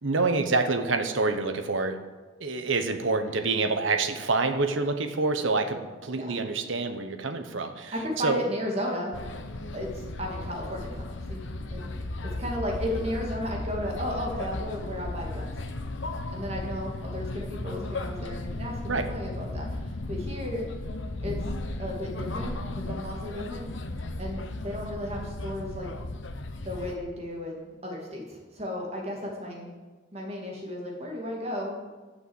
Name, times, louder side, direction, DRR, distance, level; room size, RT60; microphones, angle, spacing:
voice 1, 0.0-2.0 2.4-8.4 18.9-19.1, right 3 dB, 80° right, 7 dB, 1.1 m, -27 dB
voice 2, 7.9-9.2 9.7-12.0 12.2-15.5 16.3-20.7 21.2-21.4 21.8-23.7 24.2-25.9 26.6-29.7 30.1-31.9, equal, 30° right, -2 dB, 2.3 m, -34 dB
sound 1, 9.1-27.0, left 2 dB, 70° left, 0.9 m, -35 dB
11.5 x 6.4 x 7.9 m, 1.3 s
head